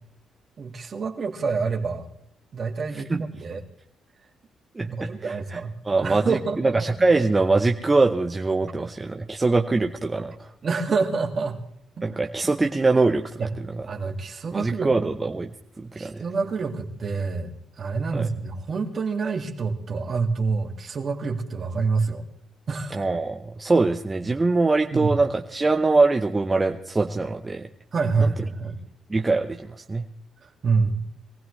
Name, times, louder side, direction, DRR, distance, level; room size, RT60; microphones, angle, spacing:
voice 1, 0.6-2.0 2.5-3.6 4.8-6.7 10.6-11.6 12.0-12.1 13.4-13.5 13.9-15.1 16.0-17.5 17.8-22.2 22.7-23.1 24.9-25.1 27.9-28.8 30.4-31.0, right 4 dB, 45° right, 5 dB, 2.2 m, -27 dB
voice 2, 4.8-5.6 5.9-10.5 12.0-13.2 14.5-15.5 15.8-16.2 18.1-18.3 22.9-27.7 28.2-28.3 29.1-30.0, right 3 dB, 20° right, 4 dB, 1.0 m, -23 dB
23.0 x 15.5 x 3.3 m, 0.72 s
cardioid pair, 90°, 0 cm